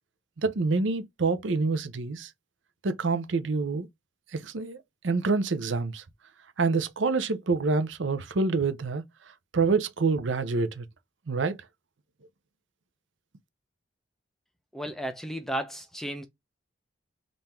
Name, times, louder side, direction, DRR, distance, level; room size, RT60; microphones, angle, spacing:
voice 1, 0.4-2.3 2.8-3.9 4.3-6.0 6.6-9.0 9.5-10.9 11.3-11.6, right 4 dB, 75° right, 0.6 m, -27 dB
voice 2, 14.7-16.3, right 1 dB, ahead, 0.6 m, -34 dB
3.7 x 2.6 x 4.3 m
head